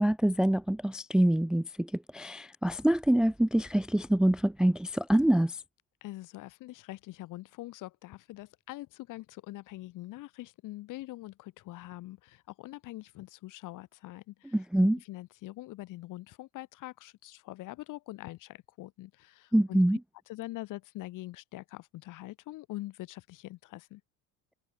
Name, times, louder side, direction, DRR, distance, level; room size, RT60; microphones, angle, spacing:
voice 1, 0.0-5.6 14.5-15.0 19.5-20.0, right 1 dB, ahead, 0.4 m, -25 dB
voice 2, 6.0-14.5 14.8-19.8 20.3-24.0, left 17 dB, 65° left, 3.2 m, -44 dB
cardioid pair, 120°, 34 cm